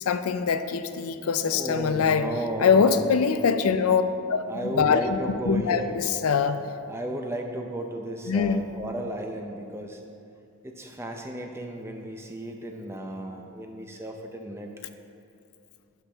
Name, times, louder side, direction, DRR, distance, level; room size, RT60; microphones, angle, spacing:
voice 1, 0.1-2.3 2.6-4.0 4.3-5.2 5.5-6.6 8.3-8.7, left 6 dB, 85° left, 10 dB, 0.4 m, -23 dB
voice 2, 1.5-3.1 4.5-6.0 6.9-10.0 10.6-14.7, right 1 dB, 10° right, 3 dB, 0.6 m, -34 dB
11.5 x 5.9 x 3.4 m, 2.5 s
head